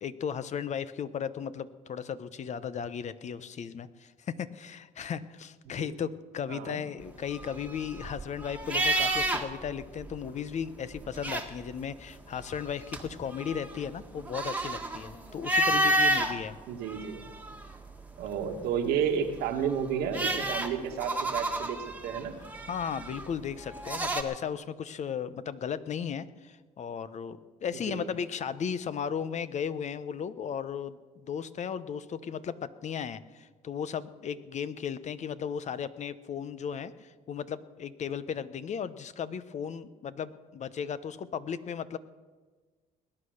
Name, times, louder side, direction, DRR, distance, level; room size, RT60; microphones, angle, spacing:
voice 1, 0.0-16.6 22.7-42.0, left 7 dB, 45° left, 14 dB, 0.8 m, -36 dB
voice 2, 6.5-6.8 16.7-17.3 18.2-21.8 22.0-22.3 27.9-28.1, right 7 dB, 90° right, 5 dB, 1.7 m, -31 dB
sound 1, 7.2-9.7 10.0-10.1 10.9-11.8 12.4-16.3 16.9-17.9 19.4-24.2, right 1 dB, 10° right, 1.6 m, -30 dB
20.0 x 9.9 x 6.5 m, 1.4 s
cardioid pair, 90°, 16 cm